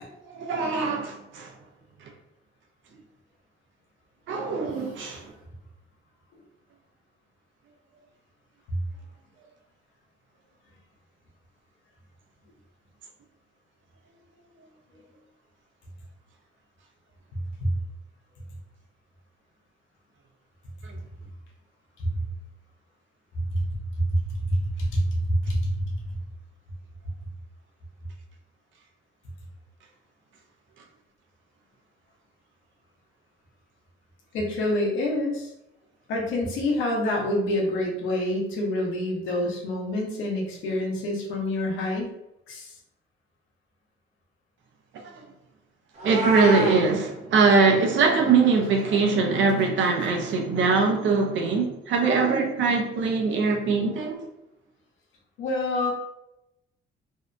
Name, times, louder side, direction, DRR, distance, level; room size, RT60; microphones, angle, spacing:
voice 1, 0.3-1.5 2.0-2.1 4.3-5.3 20.8-21.0 44.9-45.3 46.0-54.2, right 4 dB, 75° right, 0.6 m, -22 dB
voice 2, 23.3-25.9 34.3-35.5 36.1-42.1 42.5-42.7 55.4-55.9, left 1 dB, 90° left, 0.7 m, -27 dB
Meow, 45.9-46.8, equal, 35° right, 0.8 m, -27 dB
2.6 x 2.2 x 2.5 m
cardioid pair, 90°, 20 cm